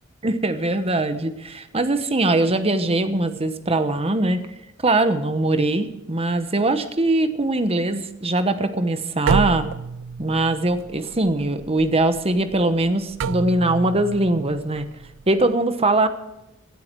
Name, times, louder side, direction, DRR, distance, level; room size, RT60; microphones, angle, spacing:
voice 1, 0.2-4.4 4.8-9.7 10.2-14.9 15.3-16.1, right 2 dB, 30° right, 10 dB, 1.1 m, -21 dB
sound 1, 9.3-15.5, right 5 dB, 65° right, 0.4 m, -29 dB
18.0 x 12.0 x 4.7 m, 0.91 s
head